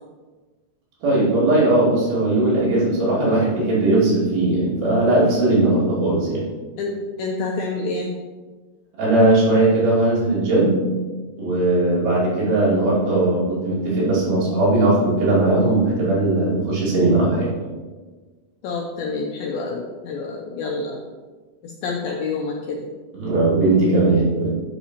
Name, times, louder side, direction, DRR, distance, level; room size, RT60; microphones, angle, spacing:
voice 1, 1.0-6.4 9.0-10.8 11.4-17.5 23.1-24.5, right 2 dB, 70° right, -8 dB, 4.6 m, -18 dB
voice 2, 6.8-8.1 12.5-12.7 18.6-21.0 21.6-22.9, left 3 dB, 85° left, 1 dB, 2.1 m, -28 dB
9.0 x 6.6 x 3.1 m, 1.4 s
omnidirectional pair, 4.9 m